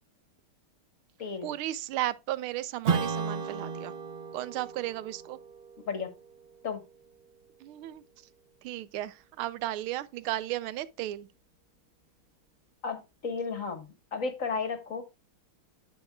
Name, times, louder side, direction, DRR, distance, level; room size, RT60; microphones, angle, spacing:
voice 1, 1.4-3.9 4.3-5.4 7.6-8.0 8.6-11.3, right 14 dB, 90° right, 1.5 m, -34 dB
Strum, 2.8-7.8, right 5 dB, 40° right, 0.9 m, -35 dB
voice 2, 12.8-15.0, left 5 dB, 45° left, 1.6 m, -33 dB
9.7 x 7.4 x 2.3 m
omnidirectional pair, 2.3 m